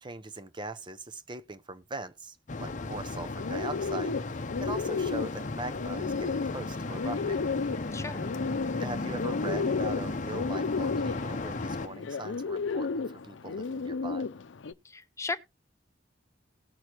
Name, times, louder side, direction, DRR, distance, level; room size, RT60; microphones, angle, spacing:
voice 1, 0.0-4.1 4.6-7.4 8.8-14.3, right 2 dB, 25° right, 0.7 m, -41 dB
sound 1, 2.5-11.9, left 3 dB, 45° left, 0.8 m, -35 dB
Bird, 3.1-14.7, left 4 dB, 85° left, 0.6 m, -33 dB
voice 2, 7.9-8.2 14.8-15.4, left 3 dB, 15° left, 0.7 m, -35 dB
18.0 x 6.3 x 3.0 m
head